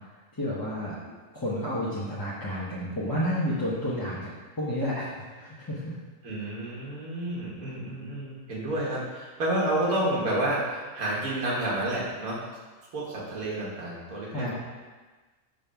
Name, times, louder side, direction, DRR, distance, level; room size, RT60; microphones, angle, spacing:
voice 1, 0.3-0.9 1.3-4.3 4.6-6.0 14.3-14.5, equal, 20° left, -9 dB, 0.8 m, -30 dB
voice 2, 6.2-12.4 12.9-14.5, right 1 dB, 85° right, -5 dB, 1.7 m, -30 dB
5.2 x 3.8 x 5.7 m, 1.3 s
omnidirectional pair, 1.4 m